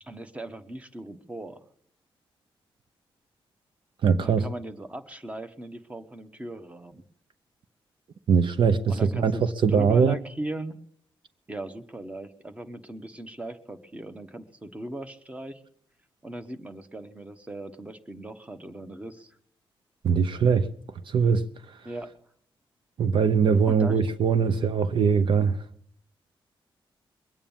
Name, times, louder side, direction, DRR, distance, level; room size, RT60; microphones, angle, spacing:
voice 1, 0.0-1.6 4.2-7.0 8.9-9.4 9.7-10.8 11.5-15.6 16.2-19.4 21.8-22.1 23.7-24.0, right 1 dB, 15° right, 1.2 m, -38 dB
voice 2, 4.0-4.5 8.3-10.1 20.0-20.7 21.1-21.4 23.0-25.6, right 6 dB, 60° right, 0.8 m, -21 dB
22.5 x 8.8 x 7.3 m
wide cardioid pair, 125°, 9 cm